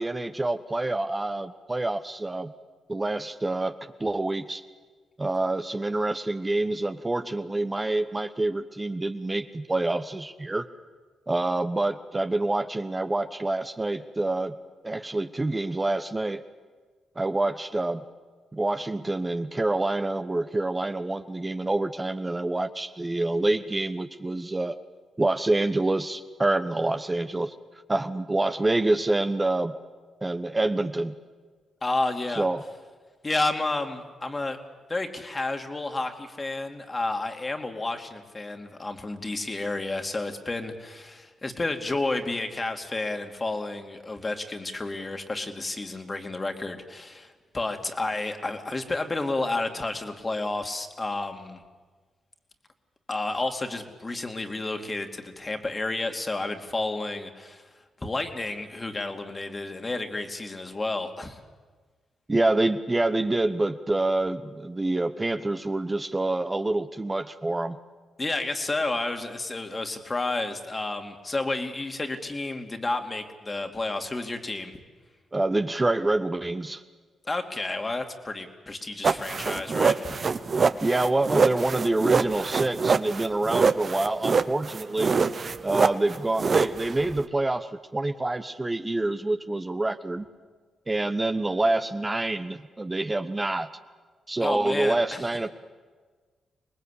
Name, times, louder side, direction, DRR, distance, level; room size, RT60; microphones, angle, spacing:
voice 1, 0.0-2.5 2.9-3.7 4.0-4.6 5.2-10.6 11.3-14.6 14.8-16.4 17.2-18.0 18.5-24.8 25.2-27.5 27.9-29.7 30.2-31.2 32.3-32.6 62.3-67.8 75.3-76.8 80.8-85.1 85.6-90.3 90.9-93.7 94.3-95.5, right 2 dB, 25° right, 8 dB, 1.0 m, -27 dB
voice 2, 31.8-32.5 33.2-34.6 34.9-51.6 53.1-57.6 58.0-61.4 68.2-74.7 77.2-80.2 94.4-95.3, left 2 dB, 30° left, 5 dB, 2.6 m, -31 dB
sound 1, 79.0-87.2, right 5 dB, 50° right, 1.0 m, -24 dB
24.5 x 19.5 x 8.4 m, 1.4 s
supercardioid pair, 50°, 0 cm